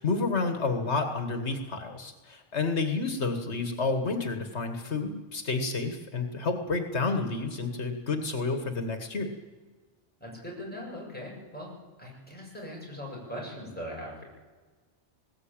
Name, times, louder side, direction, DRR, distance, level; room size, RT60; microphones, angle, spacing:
voice 1, 0.0-9.4, left 3 dB, 80° left, 6 dB, 1.9 m, -30 dB
voice 2, 10.2-11.7 12.0-14.2, equal, 10° left, -4 dB, 7.5 m, -40 dB
19.5 x 17.0 x 8.8 m, 1.4 s
omnidirectional pair, 1.1 m